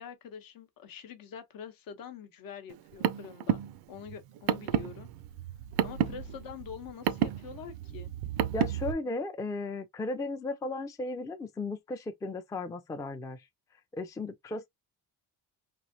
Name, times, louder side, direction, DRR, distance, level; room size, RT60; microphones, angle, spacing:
voice 1, 0.0-3.6 3.9-5.1 5.8-8.1, left 7 dB, 65° left, 0.8 m, -45 dB
Car, 2.7-8.9, right 10 dB, 90° right, 0.5 m, -31 dB
voice 2, 8.5-13.4 13.9-14.7, left 2 dB, 10° left, 0.3 m, -35 dB
3.1 x 2.6 x 2.6 m
cardioid pair, 125°, 37 cm